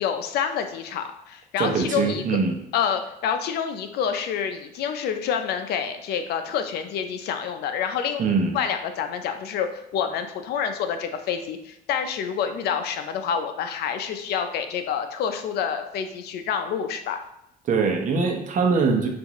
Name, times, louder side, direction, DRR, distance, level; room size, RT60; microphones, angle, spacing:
voice 1, 0.0-2.2 2.7-8.2 8.5-17.2, left 7 dB, 70° left, 7 dB, 0.6 m, -28 dB
voice 2, 1.6-2.6 8.2-8.6 17.6-19.1, right 4 dB, 50° right, 3 dB, 0.9 m, -22 dB
6.1 x 2.6 x 3.0 m, 0.80 s
cardioid pair, 110°, 17 cm